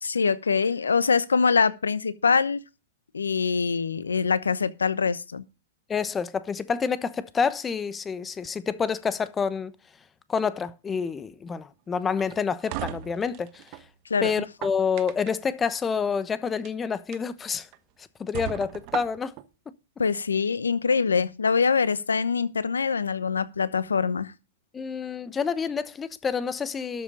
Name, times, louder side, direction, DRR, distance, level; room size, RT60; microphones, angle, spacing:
voice 1, 0.0-2.6 3.1-5.4 14.1-14.3 20.0-24.3, left 5 dB, 85° left, 0.9 m, -24 dB
voice 2, 5.9-9.7 10.3-13.6 14.2-17.7 18.0-19.3 24.7-27.0, left 6 dB, 20° left, 1.0 m, -28 dB
sound 1, 12.2-13.9 14.4-15.5 16.5-16.7 17.1-17.2 17.7-17.8 18.3-19.5, right 14 dB, 45° right, 1.1 m, -36 dB
13.0 x 7.1 x 4.9 m
hypercardioid pair, 110°, 0 cm